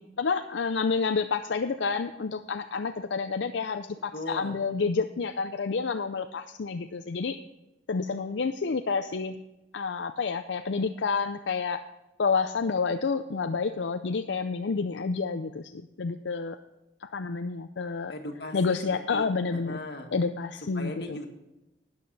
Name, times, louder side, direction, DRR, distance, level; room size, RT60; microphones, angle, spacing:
voice 1, 0.2-7.4 7.9-9.4 9.7-11.8 12.2-16.6 17.0-18.1 18.5-19.8 20.1-21.2, left 4 dB, 80° left, 7 dB, 0.5 m, -29 dB
voice 2, 4.1-4.6 18.1-19.3 19.5-20.1 20.7-21.3, left 1 dB, 60° left, 2 dB, 1.9 m, -38 dB
12.5 x 9.7 x 4.1 m, 0.96 s
head